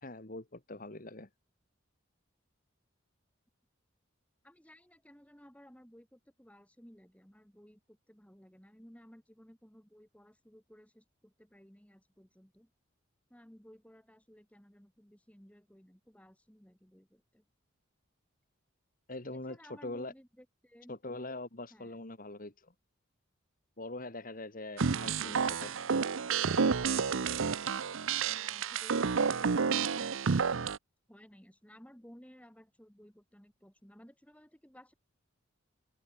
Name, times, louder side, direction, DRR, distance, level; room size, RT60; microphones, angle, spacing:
voice 1, 0.0-1.3 19.1-20.1 20.9-22.7 23.8-25.8, left 2 dB, 45° left, 2.4 m, -43 dB
voice 2, 4.4-12.7 13.3-17.4 19.3-21.0 21.7-22.0 25.0-25.1 28.2-30.2 31.1-34.9, equal, 5° left, 4.2 m, -57 dB
sound 1, 24.8-30.8, right 5 dB, 80° right, 0.7 m, -30 dB
open air
head